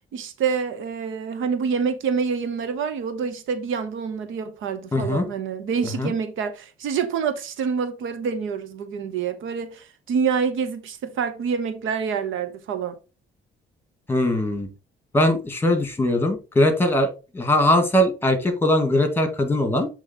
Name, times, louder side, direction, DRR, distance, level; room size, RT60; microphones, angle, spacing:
voice 1, 0.1-13.0, right 6 dB, 80° right, 1.1 m, -27 dB
voice 2, 4.9-5.3 6.0-6.1 14.1-14.7 15.1-17.1 17.3-19.9, left 1 dB, 10° left, 1.9 m, -20 dB
8.0 x 3.2 x 4.3 m
cardioid pair, 90°, 20 cm